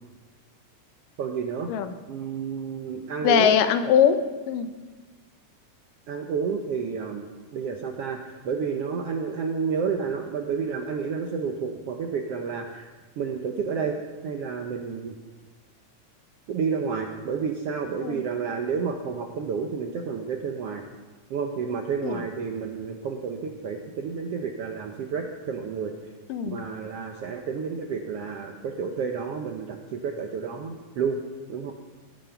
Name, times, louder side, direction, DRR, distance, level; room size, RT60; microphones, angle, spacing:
voice 1, 1.2-1.7 2.1-3.5 6.1-7.3 7.5-12.9 13.2-14.0 14.2-15.2 16.5-20.8 21.3-25.9 26.4-31.2 31.5-31.7, right 6 dB, 70° right, 3 dB, 1.5 m, -30 dB
voice 2, 3.2-4.2 4.5-4.7 18.0-18.2 22.0-22.2 26.3-26.6, left 8 dB, 80° left, 10 dB, 2.4 m, -21 dB
18.5 x 9.2 x 5.9 m, 1.3 s
omnidirectional pair, 3.8 m